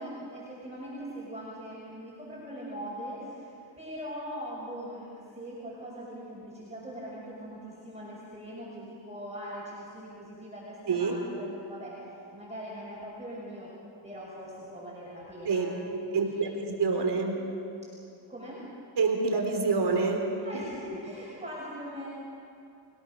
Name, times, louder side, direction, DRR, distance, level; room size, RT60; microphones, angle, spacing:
voice 1, 0.0-11.9 12.3-13.7 14.0-15.7 16.1-16.6 18.3-18.6 20.4-22.1, equal, 15° right, -6 dB, 6.6 m, -41 dB
voice 2, 16.1-16.5 16.8-17.4 19.0-20.3, right 4 dB, 60° right, 3 dB, 3.9 m, -26 dB
30.0 x 17.5 x 6.6 m, 2.6 s
cardioid pair, 100°, 44 cm